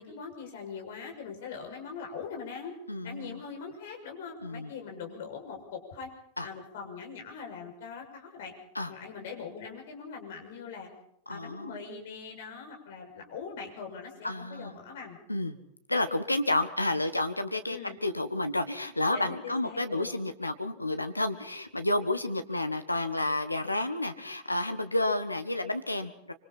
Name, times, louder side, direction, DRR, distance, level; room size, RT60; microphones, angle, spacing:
voice 1, 0.0-2.7 3.0-6.1 6.4-8.5 8.9-10.9 11.3-15.2 17.7-18.0 19.1-20.2, left 5 dB, 55° left, 1 dB, 6.6 m, -42 dB
voice 2, 2.9-3.4 4.4-4.7 6.4-6.5 8.7-8.9 11.3-11.8 14.2-14.7 15.3-15.6 15.9-26.3, left 2 dB, 85° left, 8 dB, 1.5 m, -30 dB
26.0 x 25.5 x 4.3 m, 0.72 s
figure-of-eight pair, 90°, 0 cm